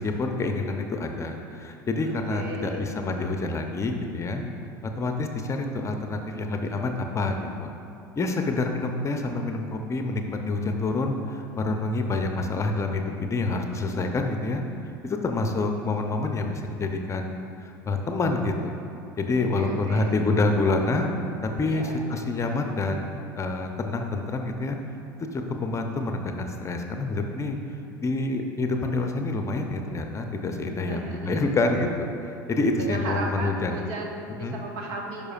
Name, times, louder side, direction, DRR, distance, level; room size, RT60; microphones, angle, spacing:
voice 1, 0.0-4.4 4.8-7.7 8.2-14.6 15.0-18.8 19.2-21.1 21.6-24.8 25.3-27.6 28.0-33.8 34.4-34.6, left 2 dB, 25° left, 4 dB, 0.6 m, -27 dB
voice 2, 2.0-2.9 19.4-20.2 21.7-22.0 30.9-31.4 32.8-35.3, right 2 dB, 65° right, 0 dB, 1.0 m, -35 dB
11.0 x 5.1 x 2.4 m, 2.8 s
hypercardioid pair, 75°, 11 cm